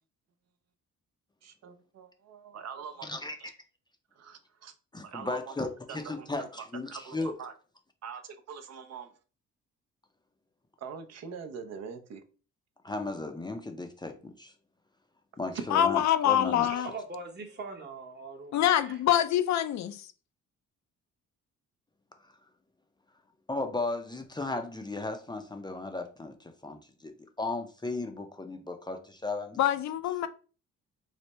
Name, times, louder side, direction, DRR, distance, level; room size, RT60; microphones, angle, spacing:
voice 1, 1.4-3.5 4.2-4.7 5.0-5.5 5.9-6.3 6.9-7.5 8.0-9.1 10.8-12.2 15.5-15.6 16.6-16.8, right 6 dB, 60° right, 0.6 m, -43 dB
voice 2, 3.0-3.4 4.9-7.3 12.8-14.5 15.4-16.7 22.2-22.3 23.5-27.1 27.4-29.6, left 2 dB, 15° left, 0.5 m, -35 dB
voice 3, 15.7-16.9 18.5-20.1 29.6-30.3, left 11 dB, 65° left, 0.5 m, -25 dB
voice 4, 16.8-19.2, right 3 dB, 35° right, 0.9 m, -42 dB
3.2 x 2.1 x 4.1 m
cardioid pair, 90°, 30 cm